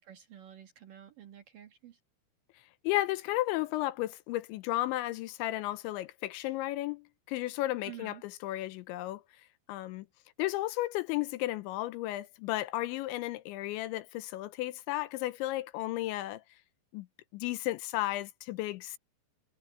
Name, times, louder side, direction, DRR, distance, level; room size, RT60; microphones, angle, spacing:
voice 1, 0.1-2.0 7.8-8.2, right 11 dB, 65° right, 2.3 m, -49 dB
voice 2, 2.8-9.2 9.7-10.1 10.4-16.4 16.9-17.1 17.3-19.0, left 16 dB, 85° left, 3.0 m, -33 dB
omnidirectional pair, 5.5 m